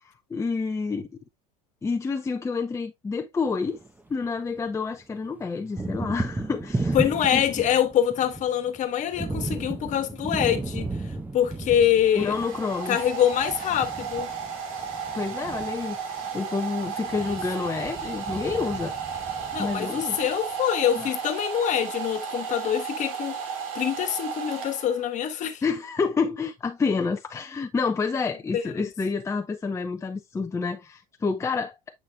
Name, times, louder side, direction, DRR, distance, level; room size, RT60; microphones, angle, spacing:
voice 1, 0.3-1.1 1.8-3.8 4.1-7.0 7.3-7.4 12.1-13.0 15.1-18.9 19.6-20.2 21.0-21.1 25.6-31.8, left 4 dB, 15° left, 0.7 m, -28 dB
Thunder, 3.5-4.7 5.0-20.2, right 2 dB, 10° right, 0.9 m, -35 dB
voice 2, 6.9-10.9 11.3-12.3 12.9-14.3 17.2-17.4 19.5-23.4 23.7-25.6 28.5-28.7, left 10 dB, 45° left, 1.4 m, -25 dB
Domestic sounds home sounds, 11.5-25.2, right 6 dB, 75° right, 2.7 m, -34 dB
8.4 x 5.8 x 2.3 m
supercardioid pair, 105°, 18 cm